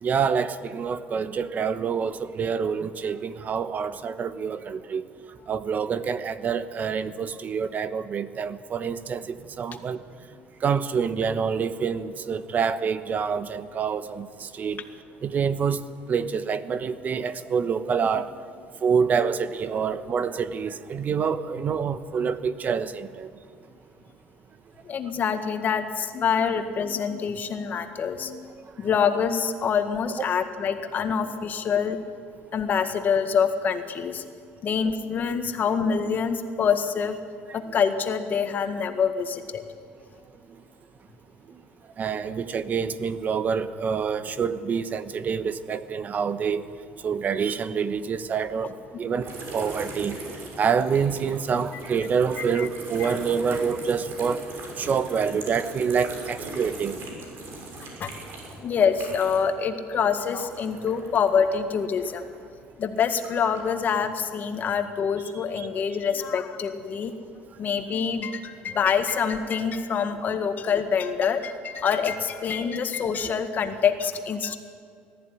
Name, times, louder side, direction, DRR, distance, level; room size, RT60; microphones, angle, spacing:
voice 1, 0.0-5.0 5.5-10.0 10.6-14.8 15.2-15.8 16.1-18.3 18.8-23.3 37.5-37.6 42.0-46.6 47.0-50.2 50.6-54.5 54.8-57.0 65.6-65.7, right 6 dB, 40° right, 12 dB, 1.1 m, -27 dB
voice 2, 24.9-32.0 32.5-34.2 34.6-37.2 37.5-39.6 52.6-52.7 53.0-53.1 58.0-58.2 58.6-62.2 62.8-67.1 67.6-74.6, left 6 dB, 45° left, 7 dB, 1.8 m, -26 dB
sound 1, 49.2-59.6 59.8-62.4 62.9-63.7, right 2 dB, 55° right, 6.7 m, -40 dB
19.5 x 14.0 x 10.0 m, 2.3 s
cardioid pair, 105°, 4 cm